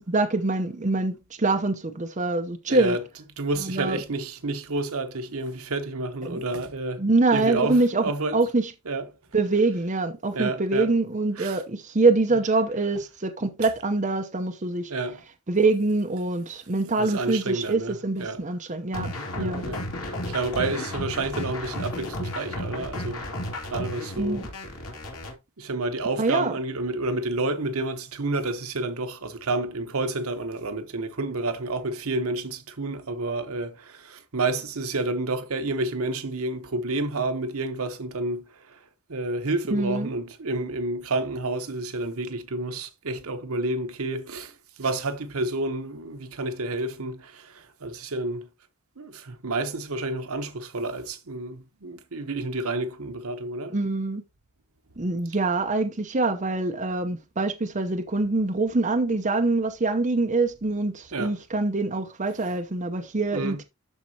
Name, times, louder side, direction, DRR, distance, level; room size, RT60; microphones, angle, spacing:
voice 1, 0.0-3.0 3.6-4.0 6.2-6.4 7.0-8.0 8.3-8.7 9.3-14.9 15.5-19.6 24.2-24.4 26.2-26.5 39.7-40.1 53.7-54.2 55.0-63.6, right 3 dB, 35° right, 0.8 m, -24 dB
voice 2, 2.7-3.0 3.4-7.0 7.3-8.4 8.9-9.1 10.3-10.9 11.4-11.6 14.9-15.2 17.0-18.4 19.4-23.3 23.6-24.4 25.6-38.8 39.1-48.5 49.0-53.7 61.1-61.3 63.3-63.6, right 2 dB, 75° right, 1.0 m, -30 dB
sound 1, 18.9-25.3, left 1 dB, 80° left, 2.5 m, -33 dB
12.5 x 4.3 x 2.8 m
head